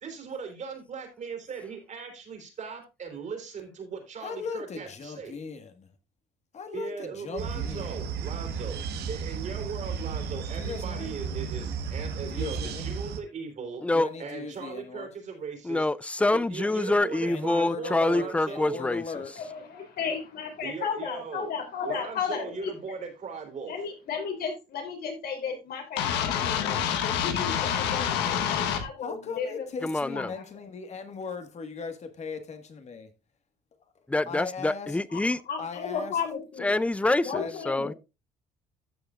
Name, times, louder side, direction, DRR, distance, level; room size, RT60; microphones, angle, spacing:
voice 1, 0.0-5.3 6.7-13.8 14.2-15.9 16.3-18.8 20.6-21.5 21.8-23.7, right 5 dB, 45° right, 3.6 m, -38 dB
voice 2, 4.2-6.0 6.5-7.9 10.6-11.2 12.3-12.9 13.9-15.1 17.3-19.3 29.0-33.1 34.0-35.0 35.6-36.2 37.3-37.6, left 5 dB, 40° left, 1.7 m, -38 dB
sound 1, 7.4-13.2, right 6 dB, 75° right, 1.3 m, -34 dB
voice 3, 15.6-19.0 29.8-30.3 34.1-35.4 36.6-37.9, left 2 dB, 5° left, 0.4 m, -26 dB
voice 4, 19.4-22.7 23.7-29.7 30.1-30.4 35.1-35.2 35.5-36.7 37.3-38.0, left 6 dB, 65° left, 3.4 m, -34 dB
sound 2, 26.0-28.8, left 9 dB, 90° left, 1.3 m, -27 dB
14.0 x 6.6 x 2.5 m
cardioid pair, 110°, 17 cm